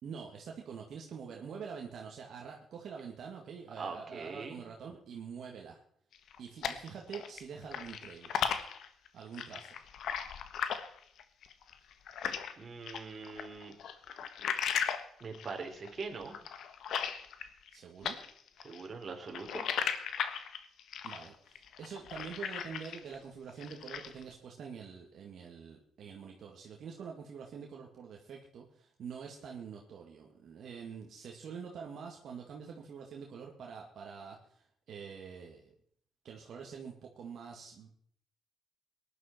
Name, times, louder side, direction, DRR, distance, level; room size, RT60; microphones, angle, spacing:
voice 1, 0.0-5.8 6.4-8.3 9.1-9.7 17.7-18.2 21.0-35.7 36.2-37.9, right 6 dB, 65° right, 0 dB, 2.2 m, -46 dB
voice 2, 3.8-4.6 12.6-13.7 15.2-16.3 18.6-19.7, right 4 dB, 40° right, 2 dB, 3.8 m, -42 dB
sound 1, 6.1-7.4 7.7-12.5 12.9-17.8 18.0-23.1 23.5-24.2, left 8 dB, 70° left, 1.4 m, -37 dB
19.0 x 11.0 x 4.5 m, 0.64 s
cardioid pair, 90°, 0 cm